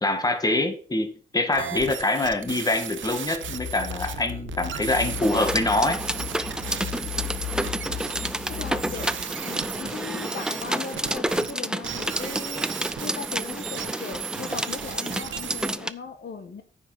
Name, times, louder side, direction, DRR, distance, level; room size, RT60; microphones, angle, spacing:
voice 1, 0.0-6.0, left 2 dB, 20° left, 1.6 m, -25 dB
sound 1, 1.5-11.5 11.8-15.7, right 9 dB, 85° right, 0.9 m, -36 dB
sound 2, 3.4-9.2, left 11 dB, 90° left, 0.6 m, -36 dB
sound 3, 5.2-15.9, right 1 dB, 5° right, 0.5 m, -30 dB
voice 2, 8.5-12.7 13.0-16.6, left 6 dB, 65° left, 1.5 m, -38 dB
9.6 x 5.7 x 6.0 m
wide cardioid pair, 105°, 19 cm